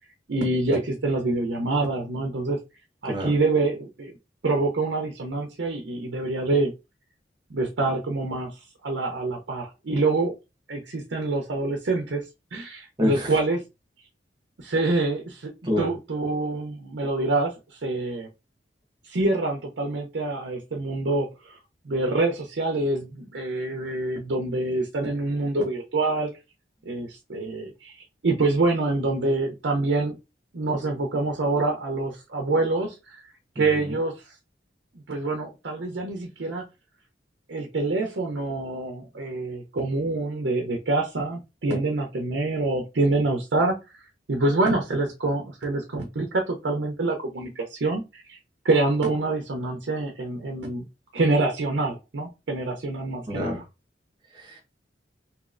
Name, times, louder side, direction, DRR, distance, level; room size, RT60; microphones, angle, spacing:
voice 1, 0.3-2.6 3.0-4.1 4.4-6.7 7.5-8.5 8.8-10.3 10.7-12.2 12.5-13.6 14.6-18.3 19.0-21.6 21.8-26.3 26.8-30.2 30.5-33.2 33.6-34.1 35.1-36.6 37.5-44.0 44.3-48.4 48.6-50.8 51.1-53.6, right 2 dB, 75° right, 2 dB, 0.6 m, -26 dB
voice 2, 3.0-3.4 13.0-13.3 15.6-15.9 33.5-33.9 53.3-53.6 54.3-54.6, left 1 dB, 25° right, -1 dB, 1.0 m, -27 dB
3.1 x 2.9 x 2.5 m, 0.26 s
head